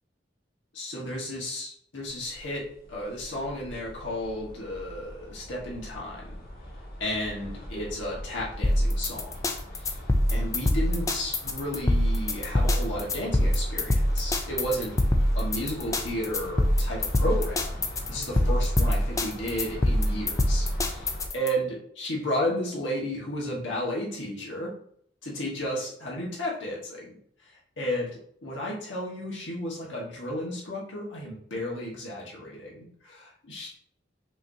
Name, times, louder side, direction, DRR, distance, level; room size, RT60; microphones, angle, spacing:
voice 1, 0.7-6.3 7.0-9.3 9.7-10.0 10.3-14.9 15.3-21.1 21.3-24.7 25.2-27.2 27.5-33.7, equal, 85° left, -4 dB, 1.6 m, -33 dB
sound 1, 2.1-21.3, equal, 55° left, 1.1 m, -40 dB
sound 2, 8.6-21.5, left 1 dB, 20° left, 0.4 m, -24 dB
5.4 x 3.0 x 2.8 m, 0.64 s
head